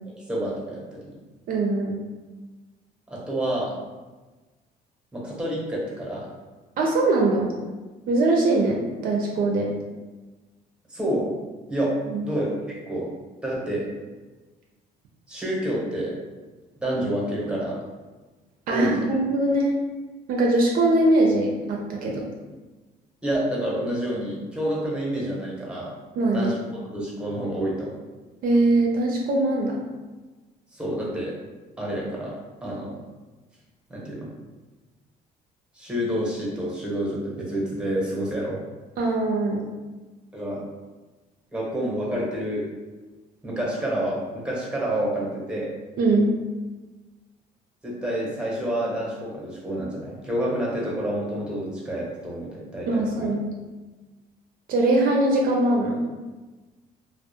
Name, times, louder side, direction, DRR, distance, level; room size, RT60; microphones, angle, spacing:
voice 1, 0.1-1.0 3.1-3.8 5.1-6.3 10.9-11.4 11.7-11.9 12.2-13.1 13.4-13.8 15.3-16.2 16.8-17.8 18.7-18.9 23.2-25.9 26.3-27.9 30.7-31.3 31.8-33.0 33.9-34.3 35.8-38.6 40.3-40.6 41.5-42.6 43.4-45.7 47.8-53.3, right 1 dB, 5° right, -5 dB, 0.8 m, -28 dB
voice 2, 1.5-2.0 6.8-7.5 8.1-9.7 12.1-12.2 18.7-19.7 20.3-22.2 26.2-26.5 28.4-29.8 39.0-39.7 46.0-46.3 52.9-53.6 54.7-56.0, right 2 dB, 60° right, -1 dB, 0.4 m, -22 dB
2.3 x 2.0 x 2.7 m, 1.2 s
cardioid pair, 110°, 17 cm